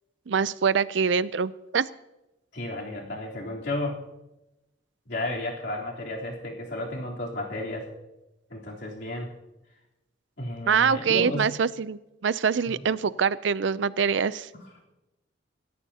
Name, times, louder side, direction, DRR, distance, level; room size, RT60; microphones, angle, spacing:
voice 1, 0.3-1.9 10.7-14.5, right 6 dB, 70° right, 17 dB, 0.5 m, -24 dB
voice 2, 2.5-4.0 5.1-7.9 8.5-9.3 10.4-11.5 12.7-12.8 14.5-14.9, left 1 dB, 60° left, -3 dB, 3.6 m, -33 dB
26.5 x 14.0 x 2.9 m, 0.96 s
head